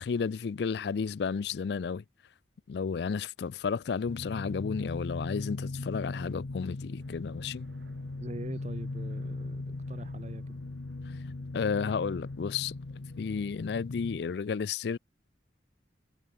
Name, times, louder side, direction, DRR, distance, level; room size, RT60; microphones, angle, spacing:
voice 1, 0.0-2.0 2.7-7.7 11.1-11.2 11.5-12.7 13.2-15.0, left 5 dB, 65° left, 0.4 m, -32 dB
sound 1, 4.0-14.2, left 2 dB, 85° left, 0.9 m, -39 dB
Aircraft, 7.0-14.1, right 2 dB, 80° right, 4.4 m, -65 dB
voice 2, 8.2-10.6, right 1 dB, 40° right, 1.0 m, -43 dB
head